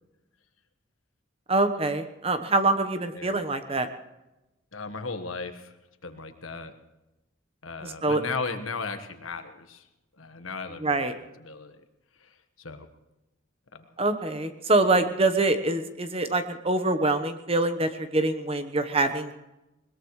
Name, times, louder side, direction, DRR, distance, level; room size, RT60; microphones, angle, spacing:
voice 1, 1.5-3.9 7.8-8.2 10.8-11.1 14.0-19.3, right 2 dB, 30° right, 9 dB, 1.1 m, -25 dB
voice 2, 3.1-3.5 4.7-5.8 6.0-6.7 7.6-9.8 10.2-11.8 12.2-12.9 13.7-13.9, left 4 dB, 80° left, 8 dB, 1.4 m, -36 dB
21.0 x 21.0 x 3.2 m, 1.0 s
head